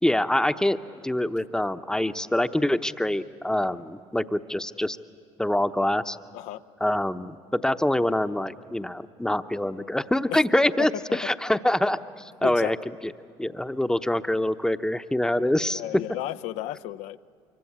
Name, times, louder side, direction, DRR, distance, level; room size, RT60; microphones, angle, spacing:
voice 1, 0.0-0.8 1.0-5.0 5.4-6.2 6.8-12.8 13.0-13.1 13.4-15.8, left 1 dB, 5° left, 10 dB, 0.9 m, -25 dB
voice 2, 15.7-17.2, left 14 dB, 70° left, 14 dB, 0.6 m, -33 dB
24.5 x 23.5 x 8.7 m, 2.4 s
hypercardioid pair, 70°, 12 cm